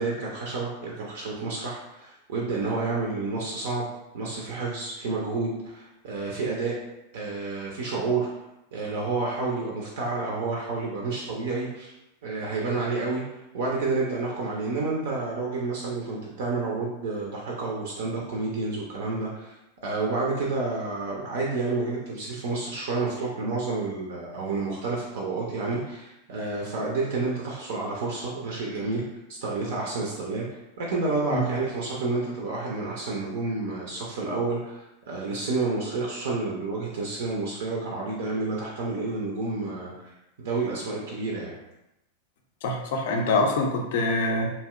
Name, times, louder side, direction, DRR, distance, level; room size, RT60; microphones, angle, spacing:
voice 1, 0.0-3.9 4.1-6.8 7.1-8.3 8.7-11.9 12.2-19.6 19.8-29.0 29.3-39.9 40.4-41.6, right 3 dB, 55° right, -3 dB, 0.4 m, -29 dB
voice 2, 42.6-44.5, left 2 dB, 55° left, 2 dB, 0.4 m, -25 dB
2.6 x 2.1 x 2.3 m, 0.91 s
figure-of-eight pair, 90°, 0 cm